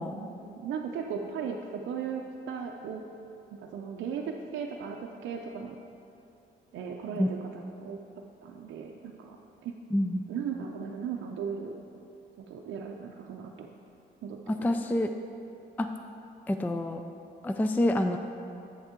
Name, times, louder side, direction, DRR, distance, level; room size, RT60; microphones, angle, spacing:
voice 1, 0.1-3.0 3.5-5.8 6.7-8.0 8.4-9.4 9.6-9.7 10.3-11.8 12.4-13.7 14.2-14.7, right 6 dB, 70° right, 0 dB, 0.5 m, -37 dB
voice 2, 9.9-10.3 14.5-15.1 15.8-15.9 16.5-17.0 17.4-18.2, left 1 dB, 10° left, 6 dB, 0.3 m, -27 dB
8.0 x 7.0 x 3.7 m, 2.6 s
cardioid pair, 90°, 20 cm